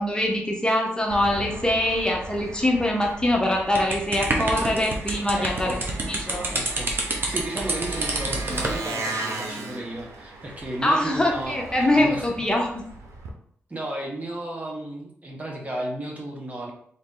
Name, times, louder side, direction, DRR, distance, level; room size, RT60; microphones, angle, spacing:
voice 1, 0.0-5.8 6.1-6.5 10.8-12.8, left 1 dB, 15° left, 0 dB, 0.8 m, -23 dB
Engine, 1.1-13.3, right 2 dB, 80° right, 0.7 m, -38 dB
sound 1, 3.8-8.8, right 2 dB, 45° right, 1.0 m, -28 dB
voice 2, 5.4-5.8 6.5-12.5 13.7-16.7, right 1 dB, 30° right, 0 dB, 1.2 m, -34 dB
3.9 x 2.6 x 3.7 m, 0.64 s
cardioid pair, 65°, 5 cm